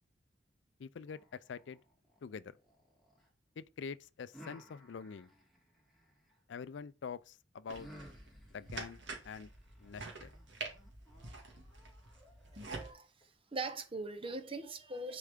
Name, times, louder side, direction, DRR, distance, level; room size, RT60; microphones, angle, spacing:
voice 1, 0.8-1.8 2.2-2.6 3.6-5.3 6.5-7.9 8.5-9.5 9.8-10.3, left 6 dB, 75° left, 0.4 m, -46 dB
sound 1, 1.1-3.3 4.3-6.4 7.7-13.3, right 1 dB, ahead, 2.7 m, -58 dB
sound 2, 7.7-12.9, right 3 dB, 80° right, 2.1 m, -47 dB
voice 2, 12.5-13.1 13.5-15.2, right 2 dB, 30° right, 1.0 m, -41 dB
9.9 x 4.7 x 3.6 m
head